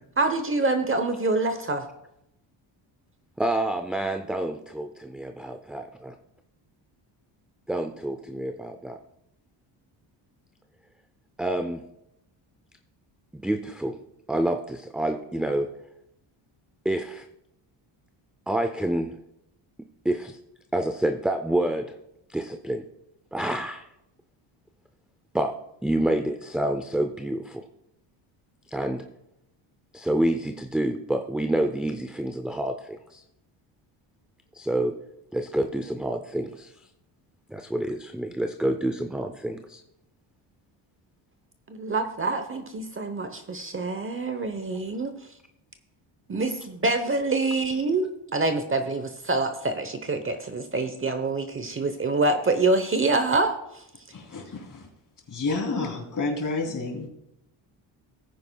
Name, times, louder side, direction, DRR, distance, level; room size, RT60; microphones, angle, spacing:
voice 1, 0.2-1.8 41.7-45.1 46.3-48.1 48.3-53.8, right 3 dB, 25° right, 8 dB, 0.9 m, -26 dB
voice 2, 3.4-6.1 7.7-9.0 11.4-11.8 13.3-14.0 14.3-15.7 16.8-17.3 18.5-19.2 20.0-20.4 20.7-22.0 22.3-22.8 23.3-23.9 25.3-27.7 28.7-29.1 29.9-33.2 34.5-35.0 35.3-36.7 37.5-39.8 47.7-47.8, right 1 dB, ahead, 6 dB, 0.4 m, -28 dB
voice 3, 54.1-54.9 55.3-57.1, left 3 dB, 40° left, 2 dB, 3.0 m, -30 dB
18.0 x 9.4 x 2.3 m, 0.84 s
cardioid pair, 110°, 47 cm